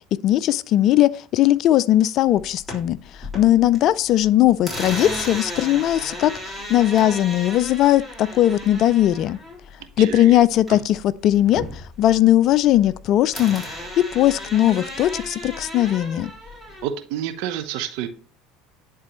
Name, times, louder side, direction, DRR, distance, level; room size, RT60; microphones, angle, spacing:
voice 1, 0.2-3.0 3.3-9.4 10.0-13.6 14.0-16.3, left 13 dB, 50° left, 0.3 m, -19 dB
sound 1, 2.4-3.8 4.1-11.0 11.3-13.0 13.3-16.9, left 1 dB, ahead, 3.7 m, -34 dB
voice 2, 9.8-10.4 10.7-10.8 16.8-18.1, right 10 dB, 65° right, 0.9 m, -29 dB
10.5 x 4.0 x 3.0 m
hypercardioid pair, 75°, 0 cm